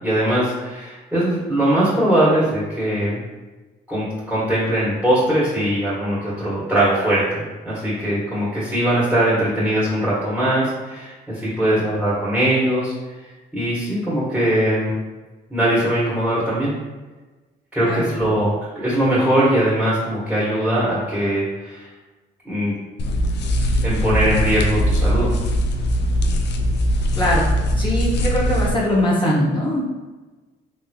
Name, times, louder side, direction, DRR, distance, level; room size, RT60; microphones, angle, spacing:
voice 1, 0.0-3.2 3.9-12.9 13.5-14.9 15.5-16.7 17.7-21.9 22.4-22.7 23.8-25.3, right 1 dB, 5° right, -9 dB, 1.4 m, -21 dB
sound 1, 23.0-28.7, equal, 60° left, 0.4 m, -20 dB
voice 2, 27.1-27.5 27.8-29.8, left 1 dB, 25° left, -6 dB, 0.9 m, -21 dB
3.5 x 3.1 x 2.3 m, 1.2 s
cardioid pair, 90°, 20 cm